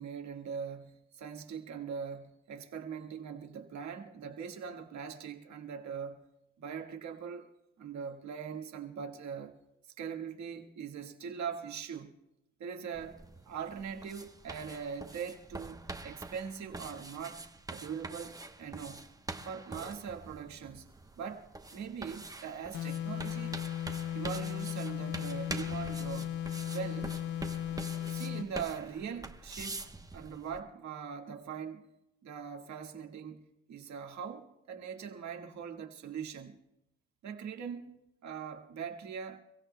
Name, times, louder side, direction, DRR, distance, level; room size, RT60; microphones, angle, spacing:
voice 1, 0.0-6.2 6.6-7.5 7.8-9.6 10.0-12.1 12.6-19.1 19.4-20.9 21.2-23.6 24.1-26.4 26.7-27.1 28.1-31.9 32.2-36.6 37.2-39.4, right 7 dB, 65° right, 1.7 m, -41 dB
sound 1, 12.9-30.6, right 2 dB, 10° right, 0.9 m, -45 dB
sound 2, 22.7-28.6, left 10 dB, 75° left, 0.8 m, -36 dB
29.0 x 16.0 x 2.2 m
cardioid pair, 90°, 30 cm